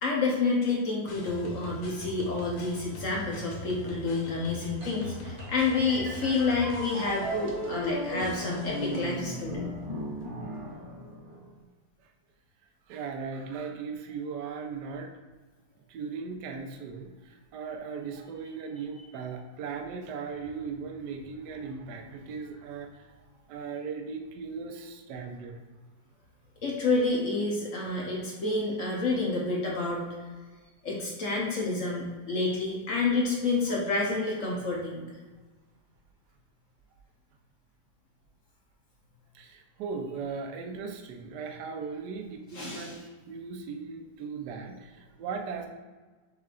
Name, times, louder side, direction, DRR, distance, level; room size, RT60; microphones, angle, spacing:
voice 1, 0.0-9.6 26.6-30.1 30.8-35.0 42.5-42.9, left 3 dB, 55° left, -3 dB, 1.0 m, -29 dB
sound 1, 1.1-9.4, left 1 dB, 90° left, 1.6 m, -43 dB
sound 2, 4.8-11.5, equal, 55° right, 1.4 m, -36 dB
voice 2, 12.9-15.1 15.9-23.1 23.5-25.6 39.3-43.0 43.3-45.7, right 5 dB, 70° right, 4 dB, 1.1 m, -38 dB
6.5 x 3.4 x 2.4 m, 1.3 s
omnidirectional pair, 2.0 m